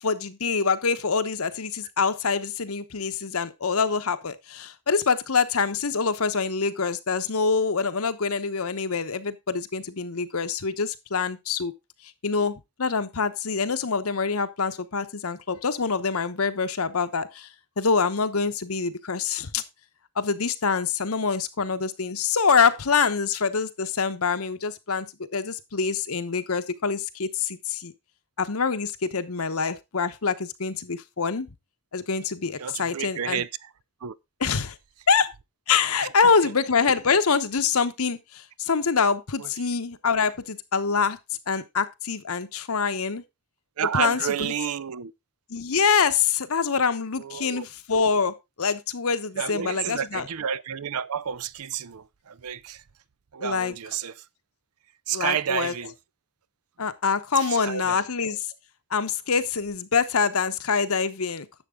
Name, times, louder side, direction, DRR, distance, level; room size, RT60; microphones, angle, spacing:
voice 1, 0.0-11.7 12.2-17.5 17.8-19.6 20.2-25.1 25.3-27.9 28.4-31.5 31.9-33.4 34.4-34.7 35.1-35.3 35.7-41.2 41.5-43.2 43.9-44.5 45.5-50.3 53.4-53.8 55.1-55.7 56.8-58.4 58.9-61.5, left 5 dB, 80° left, 1.0 m, -25 dB
voice 2, 32.6-33.7 34.0-34.1 36.0-36.1 43.8-45.1 47.2-47.7 49.4-52.8 53.3-54.1 55.1-55.9 57.6-58.0, right 8 dB, 85° right, 0.6 m, -30 dB
11.0 x 7.3 x 3.6 m
head